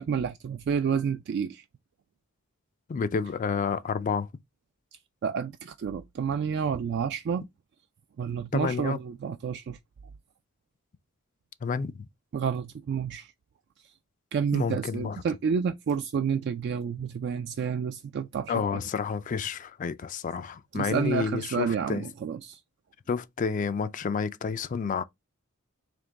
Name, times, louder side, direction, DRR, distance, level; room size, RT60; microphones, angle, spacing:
voice 1, 0.0-1.6 5.2-7.4 8.2-9.8 12.3-13.3 14.3-18.8 20.7-22.6, right 6 dB, 55° right, 0.3 m, -29 dB
voice 2, 2.9-4.3 8.5-9.0 11.6-12.1 14.5-15.2 18.5-22.1 23.1-25.0, left 5 dB, 40° left, 0.3 m, -30 dB
3.5 x 2.9 x 3.8 m
head